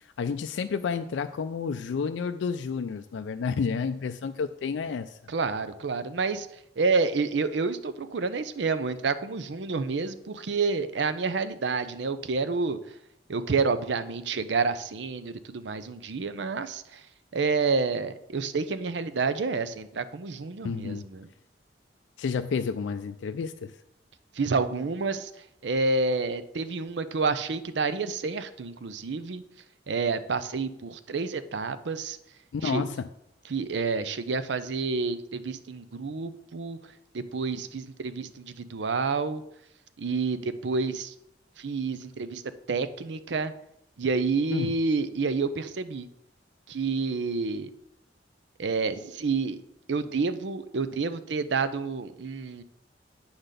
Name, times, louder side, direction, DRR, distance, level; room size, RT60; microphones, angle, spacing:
voice 1, 0.0-5.2 20.6-21.0 22.2-23.7 32.5-33.1 44.5-44.7, left 5 dB, 85° left, 9 dB, 0.4 m, -30 dB
voice 2, 5.3-12.8 13.3-17.1 17.3-21.3 24.3-29.4 29.9-32.2 32.6-32.8 33.5-39.4 40.0-41.1 41.6-42.4 42.7-43.5 44.0-46.1 46.7-47.7 48.6-49.6 49.9-52.6, right 4 dB, 75° right, 12 dB, 0.6 m, -29 dB
8.7 x 3.9 x 6.6 m, 0.79 s
head